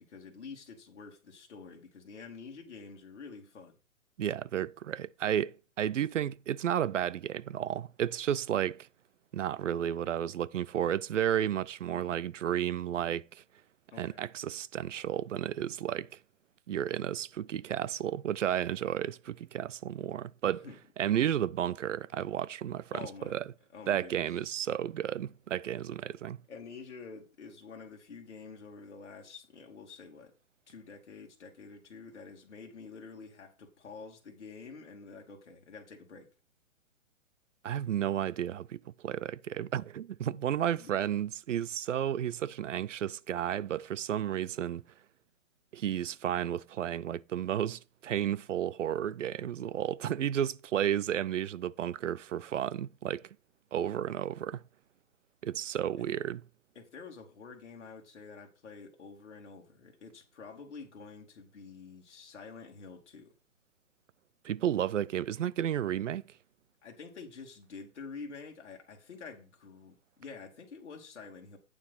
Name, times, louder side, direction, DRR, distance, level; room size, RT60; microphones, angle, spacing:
voice 1, 0.0-3.8 13.9-14.2 20.6-20.8 22.9-23.4 23.7-24.2 26.5-30.3 30.7-36.3 40.8-40.9 56.0-56.1 56.7-63.3 66.8-71.6, left 5 dB, 60° left, 2.8 m, -48 dB
voice 2, 4.2-8.9 9.3-13.4 14.0-16.1 16.7-20.6 21.0-23.5 23.9-26.4 37.6-44.8 45.7-53.2 53.7-54.6 55.4-56.4 64.4-66.3, right 10 dB, 65° right, 0.5 m, -32 dB
9.1 x 7.1 x 4.1 m
hypercardioid pair, 175°, 40 cm